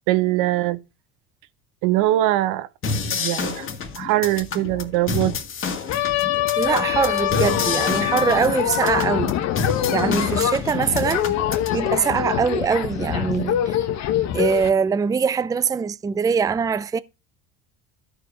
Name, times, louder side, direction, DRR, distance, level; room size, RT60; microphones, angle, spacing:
voice 1, 0.1-0.8 1.8-2.7 3.1-3.7 4.0-5.3, right 15 dB, 75° right, 0.9 m, -21 dB
sound 1, 2.8-11.8, left 4 dB, 40° left, 2.0 m, -29 dB
sound 2, 5.9-14.7, left 11 dB, 55° left, 1.3 m, -24 dB
voice 2, 6.5-9.4 9.9-11.3 11.7-13.8 14.3-17.0, right 6 dB, 10° right, 0.4 m, -22 dB
13.0 x 5.0 x 5.6 m
supercardioid pair, 105°, 32 cm